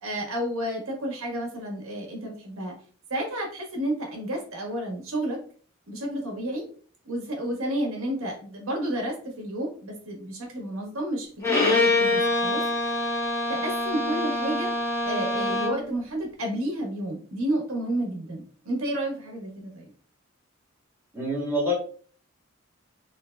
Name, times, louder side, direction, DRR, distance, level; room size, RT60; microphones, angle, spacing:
voice 1, 0.0-2.7 3.1-5.4 5.9-6.6 7.0-12.6 13.5-14.7 15.0-19.9, right 1 dB, 80° right, 0 dB, 1.4 m, -31 dB
Bowed string instrument, 11.4-15.9, left 2 dB, 15° left, 0.8 m, -25 dB
voice 2, 21.1-21.7, equal, 10° right, -7 dB, 1.3 m, -26 dB
3.9 x 3.0 x 2.3 m, 0.43 s
head